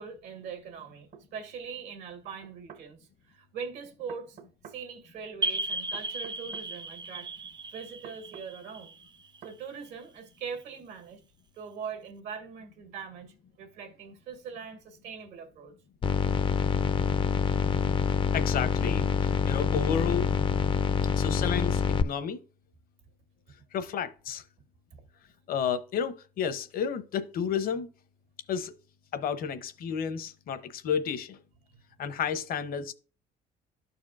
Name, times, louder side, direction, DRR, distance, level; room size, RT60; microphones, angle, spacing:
voice 1, 0.0-4.4 4.7-7.3 7.7-8.9 9.4-11.2 11.6-15.7, right 6 dB, 85° right, 1.9 m, -42 dB
sound 1, 1.1-1.3 2.4-2.9 4.1-4.8 5.9-6.7 8.0-8.5 9.4-9.6, right 7 dB, 60° right, 0.9 m, -49 dB
sound 2, 5.4-9.9, right 2 dB, 25° right, 0.4 m, -35 dB
sound 3, 16.0-22.0, left 6 dB, 30° left, 0.4 m, -26 dB
voice 2, 18.3-20.3 21.1-22.4 23.7-24.4 25.5-27.9 28.5-28.7 29.1-31.4 32.0-32.9, left 7 dB, 60° left, 0.8 m, -31 dB
12.5 x 4.3 x 2.5 m
cardioid pair, 110°, 17 cm